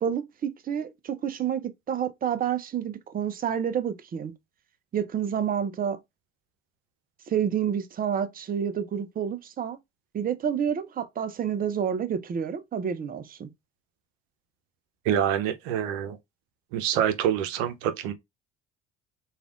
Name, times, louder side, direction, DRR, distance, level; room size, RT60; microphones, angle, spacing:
voice 1, 0.0-4.3 4.9-6.0 7.3-9.8 10.1-13.5, right 8 dB, 30° right, 0.6 m, -29 dB
voice 2, 15.0-16.2 16.7-18.1, right 9 dB, 70° right, 0.7 m, -26 dB
3.2 x 2.4 x 2.4 m
hypercardioid pair, 65°, 29 cm